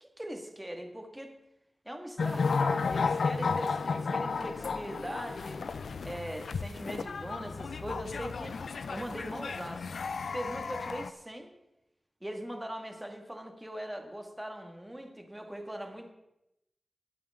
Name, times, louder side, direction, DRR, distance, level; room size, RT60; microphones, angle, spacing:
voice 1, 0.0-1.4 1.9-5.6 6.0-8.6 8.9-9.9 10.3-11.5 12.2-16.1, right 1 dB, 10° right, 4 dB, 2.0 m, -40 dB
sound 1, 2.2-11.1, left 4 dB, 90° left, 0.5 m, -33 dB
21.0 x 8.9 x 3.8 m, 0.87 s
wide cardioid pair, 65°, 0 cm